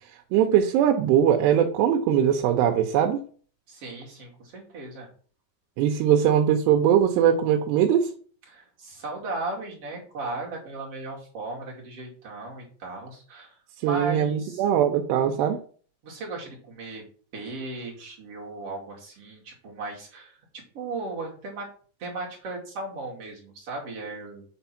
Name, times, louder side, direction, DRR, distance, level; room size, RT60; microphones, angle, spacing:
voice 1, 0.3-3.2 5.8-8.1 13.8-15.6, right 9 dB, 90° right, 4 dB, 3.0 m, -21 dB
voice 2, 3.7-5.1 8.5-13.5 13.8-14.6 16.0-17.0 17.3-20.4 20.7-21.7 22.0-24.5, right 3 dB, 40° right, -3 dB, 3.0 m, -36 dB
8.1 x 4.4 x 5.8 m, 0.43 s
omnidirectional pair, 4.7 m